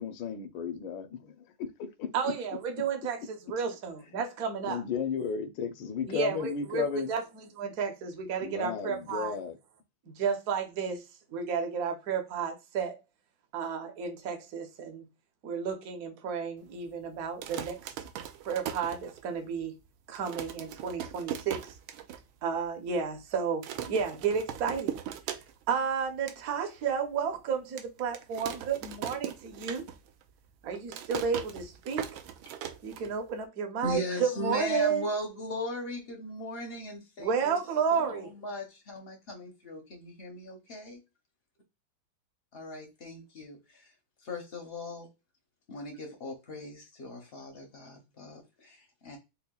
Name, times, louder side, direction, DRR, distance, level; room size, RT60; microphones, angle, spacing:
voice 1, 0.0-2.3 4.1-4.2 4.6-7.1 8.4-9.6, left 6 dB, 80° left, 1.3 m, -34 dB
voice 2, 2.1-4.8 6.1-9.4 10.1-11.0 11.3-13.0 13.5-15.1 15.4-17.9 18.5-19.7 20.1-21.7 22.4-25.0 25.7-29.8 30.6-32.2 32.8-35.1 37.2-38.3, right 6 dB, 55° right, 1.1 m, -32 dB
sound 1, 17.2-19.5 19.9-20.0 20.1-22.2 22.6-22.7 22.9-23.2 23.6-25.8 26.1-26.4 26.9-27.0 27.8-30.2 30.5-33.4, right 10 dB, 80° right, 1.3 m, -39 dB
voice 3, 33.8-37.6 37.9-41.0 42.5-43.6 44.2-45.1 45.7-49.2, left 1 dB, 55° left, 0.6 m, -38 dB
5.4 x 2.1 x 2.3 m
omnidirectional pair, 2.1 m